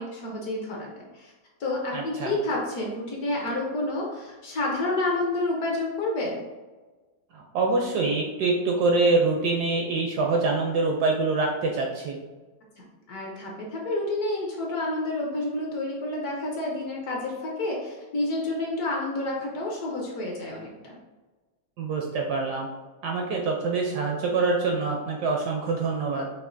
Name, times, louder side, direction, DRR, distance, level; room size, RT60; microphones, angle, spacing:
voice 1, 0.0-1.3 1.6-6.4 13.1-20.9, left 2 dB, 65° left, -2 dB, 1.0 m, -29 dB
voice 2, 1.9-2.4 7.3-12.2 21.8-22.7 23.0-26.3, right 3 dB, 75° right, 0 dB, 1.0 m, -25 dB
5.9 x 2.4 x 2.5 m, 1.2 s
omnidirectional pair, 2.1 m